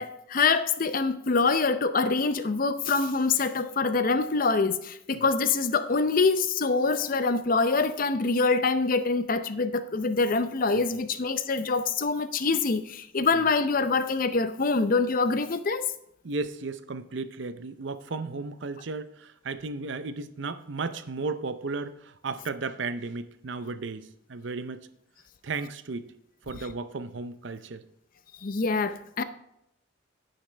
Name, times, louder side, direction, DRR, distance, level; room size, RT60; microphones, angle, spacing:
voice 1, 0.0-15.8 28.4-29.2, left 4 dB, 45° left, 12 dB, 0.6 m, -25 dB
voice 2, 16.2-24.9 25.4-26.1 26.5-27.8, right 3 dB, 60° right, 12 dB, 0.6 m, -34 dB
10.0 x 9.3 x 3.3 m, 0.79 s
head